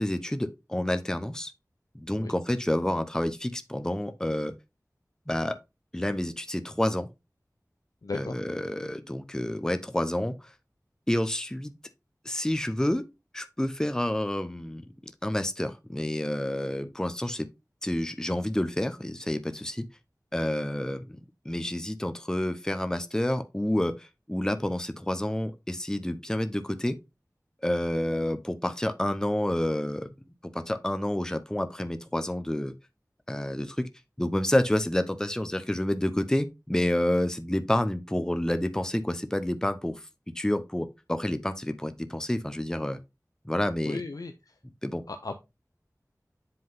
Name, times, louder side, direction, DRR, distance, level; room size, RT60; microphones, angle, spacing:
voice 1, 0.0-1.5 1.9-4.5 5.3-5.6 5.9-7.1 8.1-10.5 11.1-11.7 12.2-13.1 13.3-17.5 17.8-19.9 20.3-21.2 21.4-27.0 27.6-30.1 30.4-32.7 33.3-33.9 34.2-40.1 40.3-43.0 43.4-44.0 44.8-45.0, left 1 dB, 10° left, 0.6 m, -29 dB
voice 2, 8.0-8.3 43.8-44.6 45.1-45.4, left 3 dB, 70° left, 0.6 m, -36 dB
7.7 x 3.8 x 3.7 m
wide cardioid pair, 45°, 6 cm